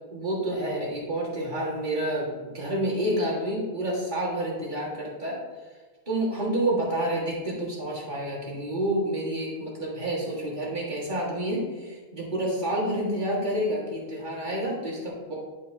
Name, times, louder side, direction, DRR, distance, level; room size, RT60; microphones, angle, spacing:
voice 1, 0.1-5.4 6.1-15.4, right 1 dB, 50° right, -5 dB, 2.0 m, -29 dB
11.0 x 4.6 x 2.7 m, 1.4 s
omnidirectional pair, 1.1 m